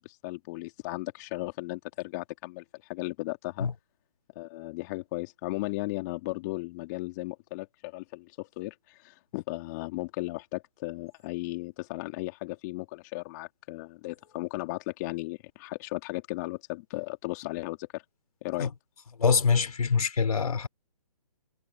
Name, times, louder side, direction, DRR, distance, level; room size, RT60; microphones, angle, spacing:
voice 1, 0.0-2.6 2.9-3.7 4.4-18.0 18.4-18.7, left 21 dB, 25° left, 2.4 m, -36 dB
voice 2, 19.2-20.7, left 5 dB, 70° left, 5.0 m, -24 dB
hypercardioid pair, 150°, 20 cm